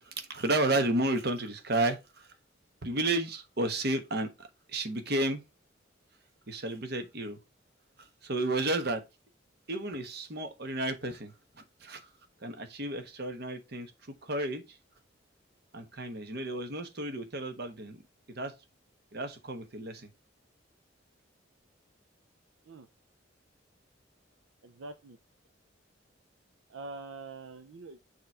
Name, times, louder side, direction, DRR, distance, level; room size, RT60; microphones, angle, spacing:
voice 1, 0.0-2.3 2.8-5.4 6.5-7.4 8.0-9.0 9.7-12.1 12.4-13.9 14.2-14.8 15.7-18.0 18.3-18.5 19.1-20.1, right 2 dB, 60° right, 1.1 m, -32 dB
voice 2, 24.6-25.2 26.7-28.0, right 3 dB, 85° right, 0.6 m, -44 dB
6.8 x 3.1 x 5.3 m
head